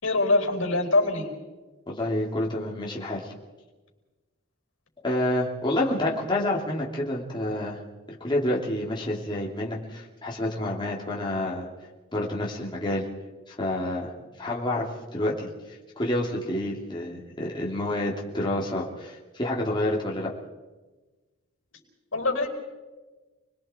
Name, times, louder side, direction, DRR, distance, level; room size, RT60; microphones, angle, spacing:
voice 1, 0.0-1.3 22.1-22.5, left 2 dB, 75° left, 3 dB, 4.9 m, -23 dB
voice 2, 1.9-3.3 5.0-7.8 8.2-11.7 12.1-13.1 13.5-14.1 14.4-15.5 16.0-20.3, left 1 dB, 25° left, -4 dB, 3.1 m, -28 dB
30.0 x 21.0 x 4.6 m, 1.2 s
head